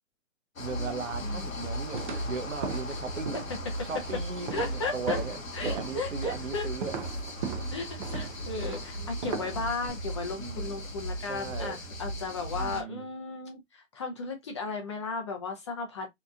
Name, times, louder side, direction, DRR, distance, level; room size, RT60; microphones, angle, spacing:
sound 1, 0.6-12.8, equal, 90° left, 0.9 m, -37 dB
voice 1, 0.6-3.4 3.8-7.0 8.0-8.1 8.7-9.2 10.4-10.8 11.3-11.8 12.5-13.1, right 5 dB, 70° right, 0.7 m, -38 dB
voice 2, 1.2-1.7 4.5-5.2 5.5-6.7 7.7-16.1, left 3 dB, 25° left, 0.4 m, -35 dB
sound 2, 1.9-9.9, right 5 dB, 40° right, 0.4 m, -39 dB
2.8 x 2.3 x 2.2 m
figure-of-eight pair, 125°, 39 cm